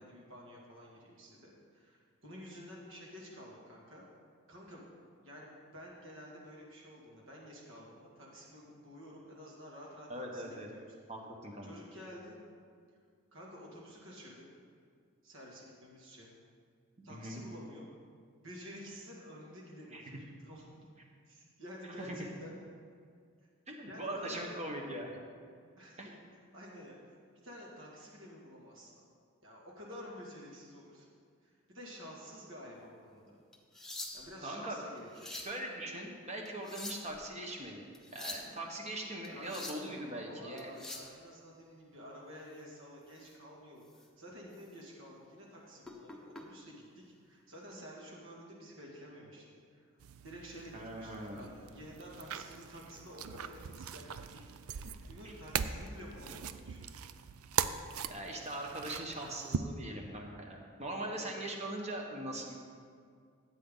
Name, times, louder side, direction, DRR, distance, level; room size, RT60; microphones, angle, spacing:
voice 1, 0.0-4.0 4.5-4.9 5.2-10.9 11.6-12.4 13.3-14.4 15.2-16.3 17.0-17.9 18.4-20.8 21.3-22.5 23.8-24.5 25.8-26.2 26.5-29.0 29.4-31.1 31.4-33.4 34.1-35.3 39.3-49.9 50.2-56.9 61.0-61.3, equal, 60° right, -3 dB, 2.5 m, -51 dB
voice 2, 10.1-10.7 11.1-11.8 17.0-17.4 19.9-20.0 22.0-22.1 23.7-25.1 26.0-26.1 34.4-34.8 35.3-40.7 50.7-51.4 55.2-55.3 58.1-62.5, right 1 dB, 30° right, 1 dB, 1.4 m, -41 dB
sound 1, 33.5-34.4 35.0-35.6 36.4-37.2 37.9-38.5 39.2-39.9 40.6-41.1 43.2-43.3 43.8-44.1 44.5-44.7 45.8-46.4 47.5-47.7, left 2 dB, ahead, 0.9 m, -45 dB
sound 2, 50.0-59.6, right 7 dB, 75° right, 0.5 m, -40 dB
14.0 x 8.6 x 4.0 m, 2.1 s
head